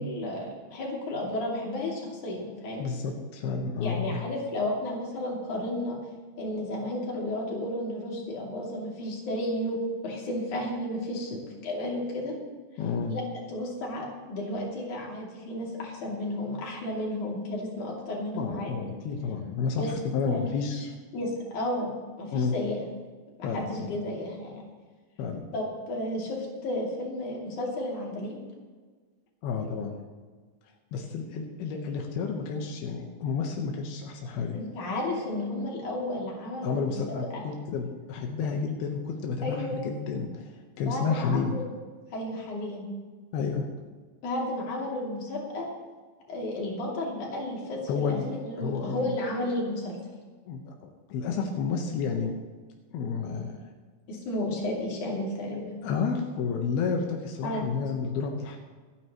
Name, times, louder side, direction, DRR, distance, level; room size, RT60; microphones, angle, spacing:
voice 1, 0.0-2.9 3.8-6.0 6.4-12.3 13.1-13.2 13.5-18.7 19.8-19.9 20.3-20.5 21.1-21.9 22.2-22.8 23.4-24.6 25.5-28.3 34.5-36.9 37.3-37.4 39.4-39.9 40.8-41.6 42.1-42.9 44.2-45.7 46.3-48.2 48.4-50.0 54.1-55.7 57.4-57.7, left 1 dB, 55° left, -3 dB, 4.2 m, -32 dB
voice 2, 2.8-4.2 11.3-11.4 12.8-13.1 18.4-20.9 22.3-22.6 23.4-24.0 25.2-25.4 29.4-30.0 30.9-34.6 36.6-40.5 40.8-41.5 43.3-43.6 47.9-49.2 50.5-52.3 52.9-53.6 55.8-58.6, left 5 dB, 90° left, 1 dB, 3.2 m, -31 dB
26.5 x 9.9 x 3.1 m, 1.4 s
omnidirectional pair, 4.3 m